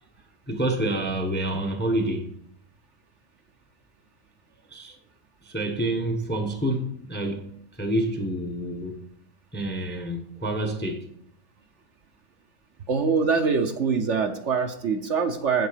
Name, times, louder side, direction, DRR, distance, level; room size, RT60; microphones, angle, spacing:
voice 1, 0.5-2.3 4.7-5.0 5.4-7.4 7.7-9.0 9.5-11.1, right 1 dB, 10° left, 0.7 m, -28 dB
voice 2, 12.9-15.7, right 5 dB, 60° right, 1.0 m, -24 dB
8.2 x 8.1 x 5.0 m
omnidirectional pair, 1.6 m